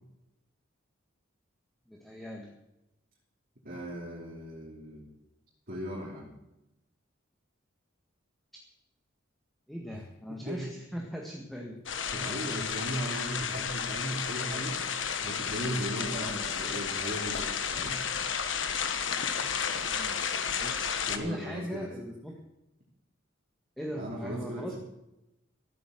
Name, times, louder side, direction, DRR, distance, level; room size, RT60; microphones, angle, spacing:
voice 1, 1.9-2.5 9.7-11.8 16.1-16.4 19.8-22.3 23.8-24.7, equal, ahead, 0 dB, 1.7 m, -40 dB
voice 2, 3.6-5.1 5.7-6.3 9.9-10.0 10.3-10.6 12.1-18.0 21.1-22.0 23.9-24.8, equal, 50° right, -3 dB, 3.1 m, -37 dB
sound 1, 11.9-21.2, left 7 dB, 70° left, 1.3 m, -32 dB
14.5 x 9.3 x 7.8 m, 0.91 s
head